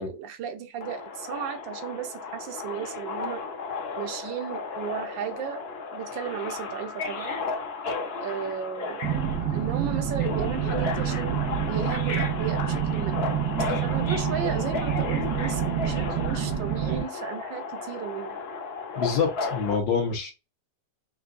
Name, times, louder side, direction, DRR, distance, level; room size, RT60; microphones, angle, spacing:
voice 1, 0.0-3.4 4.0-5.7 5.9-7.4 8.2-9.1 9.4-11.4 11.7-13.2 13.8-18.4, right 8 dB, 85° right, 1.5 m, -35 dB
Subway metro underground, 0.8-19.8, left 4 dB, 60° left, 0.6 m, -34 dB
sound 1, 9.0-17.0, right 9 dB, 65° right, 1.1 m, -28 dB
voice 2, 19.0-20.3, left 6 dB, 80° left, 1.9 m, -26 dB
5.7 x 2.6 x 2.5 m
omnidirectional pair, 2.0 m